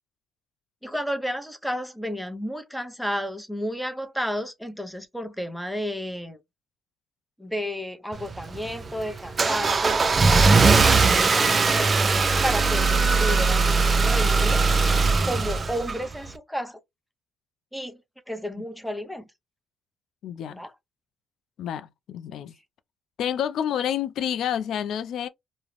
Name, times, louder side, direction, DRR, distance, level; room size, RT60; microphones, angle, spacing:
voice 1, 0.8-6.4 7.4-12.2 12.4-14.7 15.2-16.8 17.7-18.0 18.3-19.2 20.5-20.7, equal, ahead, 0.6 m, -32 dB
Car / Engine starting, 8.1-16.3, right 4 dB, 35° right, 0.4 m, -20 dB
voice 2, 20.2-20.6 21.6-22.5 23.2-25.3, left 9 dB, 70° left, 0.3 m, -29 dB
2.4 x 2.0 x 3.1 m
cardioid pair, 80°, 0 cm